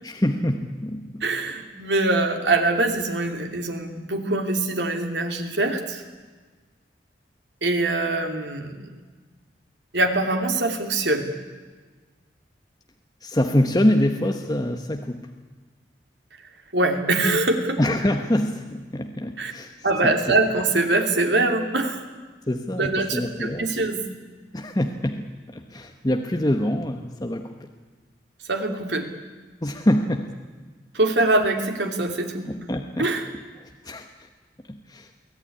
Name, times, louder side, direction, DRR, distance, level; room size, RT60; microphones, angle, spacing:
voice 1, 0.0-1.2 13.2-15.3 17.8-19.7 20.0-20.1 22.5-23.7 24.5-27.7 29.6-30.3 32.5-33.1 33.8-34.3 34.7-35.1, left 1 dB, 20° left, 5 dB, 1.1 m, -25 dB
voice 2, 1.2-6.0 7.6-8.9 9.9-11.3 16.7-17.8 19.4-19.5 19.8-22.0 22.8-24.0 28.5-29.1 30.9-32.5 33.0-33.3, right 2 dB, 80° right, 5 dB, 2.9 m, -23 dB
23.0 x 16.5 x 9.9 m, 1.4 s
head